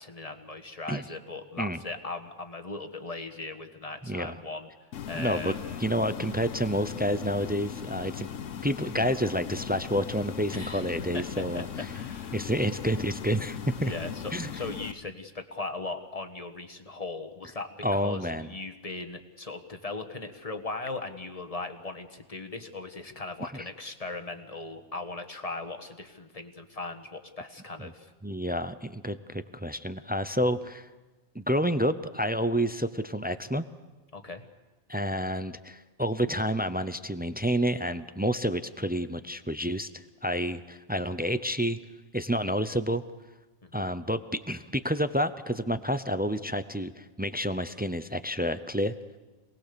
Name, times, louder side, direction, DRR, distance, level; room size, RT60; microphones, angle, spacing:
voice 1, 0.0-4.7 5.1-5.7 10.5-12.4 13.8-28.1 34.1-34.4 43.6-43.8, left 3 dB, 30° left, 6 dB, 1.5 m, -38 dB
voice 2, 4.0-4.4 5.1-5.5 5.8-8.3 8.6-11.7 12.3-13.9 14.3-14.5 17.8-18.5 23.5-23.6 27.8-27.9 28.2-30.9 31.3-33.6 34.9-41.8 42.1-43.0 43.7-48.9, equal, 15° right, 12 dB, 0.3 m, -29 dB
sound 1, 4.9-14.9, left 8 dB, 75° left, 1.2 m, -38 dB
27.0 x 19.5 x 6.9 m, 1.2 s
omnidirectional pair, 1.3 m